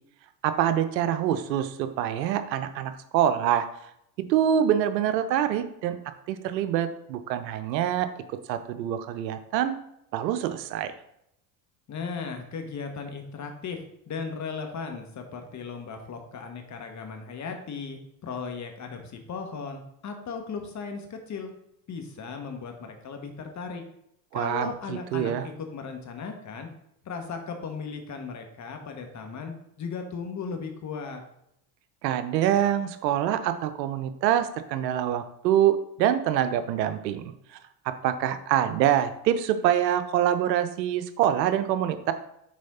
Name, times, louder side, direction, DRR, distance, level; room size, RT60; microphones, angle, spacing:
voice 1, 0.4-3.7 4.3-6.0 6.3-8.1 8.5-9.8 10.1-10.9 24.3-25.5 32.0-37.3 38.0-42.1, right 10 dB, 80° right, 10 dB, 0.7 m, -25 dB
voice 2, 11.9-21.5 21.9-23.8 24.3-26.7 27.0-31.2, left 5 dB, 35° left, 5 dB, 1.3 m, -36 dB
6.3 x 4.1 x 4.2 m, 0.77 s
hypercardioid pair, 80°, 50 cm